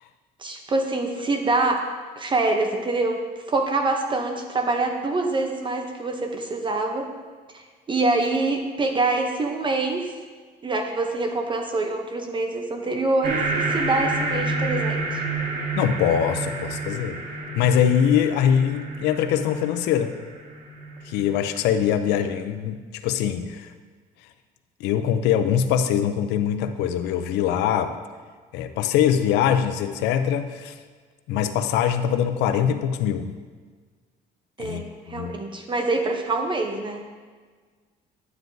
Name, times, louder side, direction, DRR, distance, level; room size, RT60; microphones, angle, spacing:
voice 1, 0.4-1.9 2.2-3.2 3.5-7.1 7.5-10.1 10.6-15.2 34.6-37.0, right 2 dB, 30° right, 3 dB, 0.7 m, -25 dB
sound 1, 13.2-22.2, right 3 dB, 55° right, 1.8 m, -29 dB
voice 2, 15.8-17.2 17.5-20.2 21.1-23.7 24.8-27.9 28.5-30.7 31.3-33.3 34.6-35.4, left 9 dB, 90° left, 9 dB, 0.5 m, -23 dB
9.5 x 9.1 x 2.7 m, 1.5 s
cardioid pair, 110°, 17 cm